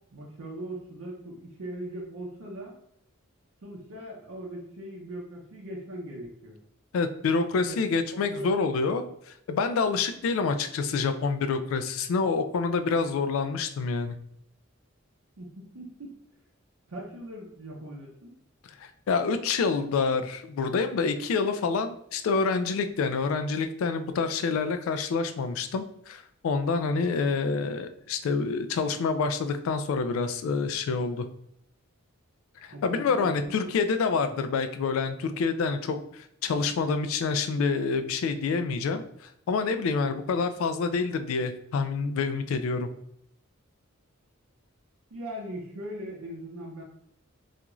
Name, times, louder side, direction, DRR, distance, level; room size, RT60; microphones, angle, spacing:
voice 1, 0.0-2.7 3.6-6.6 7.6-8.5 15.4-16.1 16.9-18.4 32.7-33.5 34.1-34.2 40.0-40.1 45.1-46.8, right 1 dB, 70° right, -3 dB, 0.6 m, -40 dB
voice 2, 6.9-14.2 18.8-31.3 32.6-42.9, left 4 dB, 70° left, 10 dB, 0.3 m, -27 dB
2.4 x 2.3 x 2.9 m, 0.71 s
head